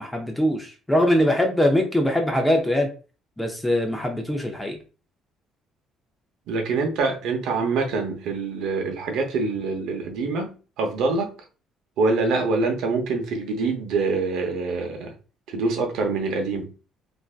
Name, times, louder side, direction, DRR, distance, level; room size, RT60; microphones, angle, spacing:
voice 1, 0.0-2.9 3.4-4.8, left 1 dB, 5° left, 0.5 m, -22 dB
voice 2, 6.5-11.3 12.0-15.1 15.5-16.7, right 3 dB, 75° right, 0.8 m, -25 dB
3.4 x 2.6 x 2.4 m
cardioid pair, 170°, 0 cm